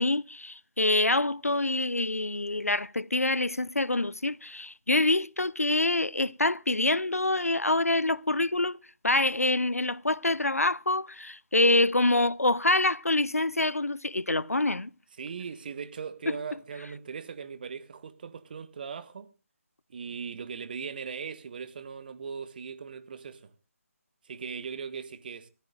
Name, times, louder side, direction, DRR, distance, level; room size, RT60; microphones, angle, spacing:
voice 1, 0.0-8.8 9.0-14.9 16.3-16.4, left 2 dB, 80° left, 0.6 m, -26 dB
voice 2, 15.2-19.3 19.9-23.5 24.2-25.5, right 6 dB, 40° right, 1.2 m, -39 dB
25.0 x 14.0 x 2.4 m
figure-of-eight pair, 150°, 8 cm